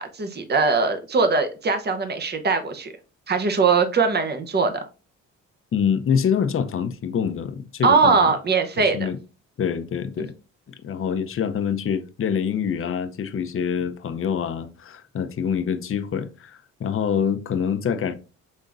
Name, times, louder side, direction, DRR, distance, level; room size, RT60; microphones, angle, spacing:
voice 1, 0.0-2.9 3.3-4.7 7.8-9.1, right 4 dB, 35° right, 1.0 m, -21 dB
voice 2, 5.7-8.3 8.8-9.2 9.6-10.3 10.7-18.2, left 7 dB, 45° left, 0.7 m, -25 dB
5.3 x 3.5 x 2.6 m
cardioid pair, 90°, 30 cm